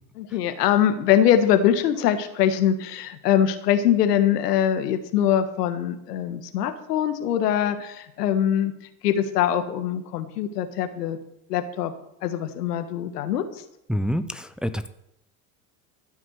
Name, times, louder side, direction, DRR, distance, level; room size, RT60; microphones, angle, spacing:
voice 1, 0.2-8.7 9.0-11.2 11.5-11.9 12.2-13.4, left 10 dB, 80° left, 9 dB, 1.5 m, -23 dB
voice 2, 13.9-14.9, equal, ahead, 10 dB, 0.7 m, -27 dB
14.5 x 6.1 x 8.0 m, 0.80 s
hypercardioid pair, 80°, 47 cm